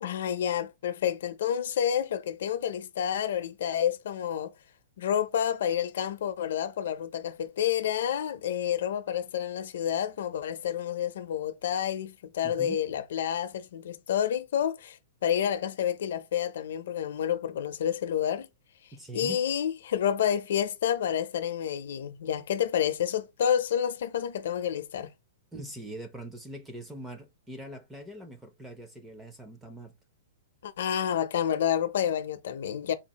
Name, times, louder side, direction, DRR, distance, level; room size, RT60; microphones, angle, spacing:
voice 1, 0.0-4.5 5.0-18.5 19.1-25.1 30.6-32.9, left 9 dB, 60° left, 0.5 m, -29 dB
voice 2, 12.4-12.8 18.9-19.4 25.5-29.9, right 1 dB, 5° right, 0.4 m, -42 dB
3.9 x 2.4 x 2.8 m
supercardioid pair, 180°, 0 cm